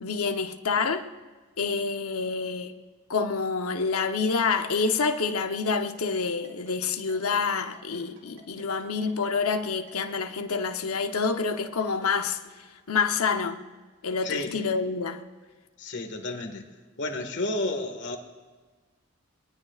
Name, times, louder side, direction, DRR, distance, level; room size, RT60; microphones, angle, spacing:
voice 1, 0.0-1.1 1.6-2.8 3.1-12.4 12.9-13.6 14.0-15.2, left 5 dB, 80° left, 0.9 m, -27 dB
Ringtone, 5.8-12.5, right 3 dB, 75° right, 3.8 m, -53 dB
voice 2, 14.2-14.5 15.8-16.6 17.0-18.2, left 2 dB, 55° left, 1.7 m, -31 dB
22.5 x 20.5 x 2.4 m
head